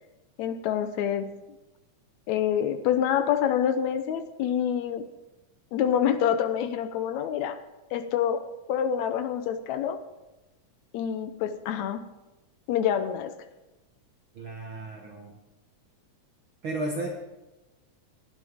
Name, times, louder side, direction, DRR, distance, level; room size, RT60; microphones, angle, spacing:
voice 1, 0.4-1.3 2.3-5.1 5.7-7.6 7.9-10.0 10.9-12.0 12.7-13.4, left 9 dB, 70° left, 10 dB, 2.1 m, -27 dB
voice 2, 14.4-15.3 16.6-17.1, right 2 dB, 50° right, 0 dB, 2.0 m, -33 dB
17.5 x 12.0 x 3.6 m, 1.0 s
omnidirectional pair, 3.5 m